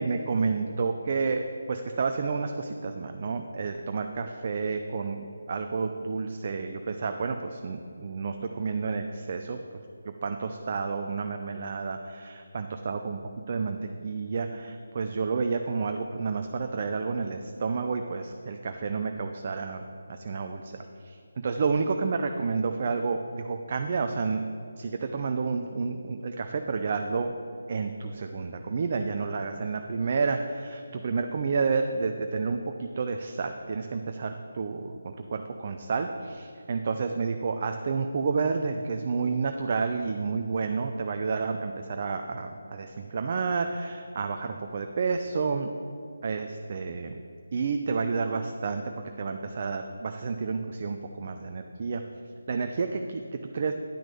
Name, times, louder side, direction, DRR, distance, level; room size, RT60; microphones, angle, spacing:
voice 1, 0.0-9.6 10.2-13.2 13.5-13.8 14.0-19.8 20.1-20.7 21.0-21.2 21.4-24.5 24.8-27.3 27.7-45.7 46.2-47.1 47.5-48.8 49.2-52.0 52.5-53.2 53.5-53.7, right 4 dB, 40° right, 5 dB, 0.6 m, -30 dB
10.0 x 6.0 x 6.9 m, 2.4 s
figure-of-eight pair, 155°, 0 cm